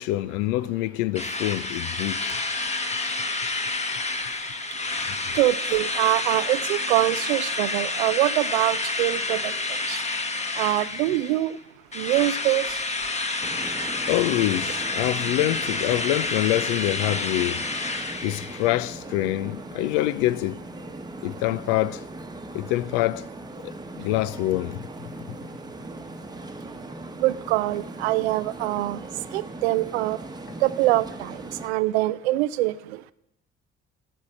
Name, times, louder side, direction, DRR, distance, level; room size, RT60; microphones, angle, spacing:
voice 1, 0.0-2.4 5.1-5.2 14.1-17.6 18.2-20.6 21.2-22.0 22.5-23.2 23.9-24.9 25.3-25.4, left 16 dB, 65° left, 0.5 m, -25 dB
Drill, 1.2-11.5 11.9-18.8, left 3 dB, 20° left, 1.2 m, -29 dB
voice 2, 5.3-10.0 10.6-11.6 11.9-12.8 27.2-29.0 29.3-30.2 30.6-33.0, right 17 dB, 75° right, 0.5 m, -24 dB
sound 1, 13.4-31.7, right 2 dB, 10° right, 1.0 m, -39 dB
12.5 x 5.4 x 8.1 m
figure-of-eight pair, 45°, 33 cm